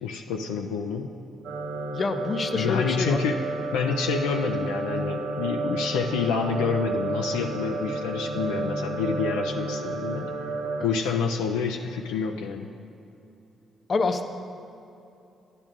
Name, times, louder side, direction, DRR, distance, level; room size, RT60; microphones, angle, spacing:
voice 1, 0.0-1.1 2.5-3.4 3.7-10.3 10.8-12.7, left 5 dB, 90° left, 3 dB, 0.4 m, -28 dB
sound 1, 1.4-10.8, right 2 dB, 85° right, 0.6 m, -31 dB
voice 2, 1.9-3.2 10.8-11.0 13.9-14.3, left 4 dB, 45° left, 7 dB, 0.6 m, -27 dB
10.5 x 10.5 x 2.5 m, 2.7 s
supercardioid pair, 55°, 0 cm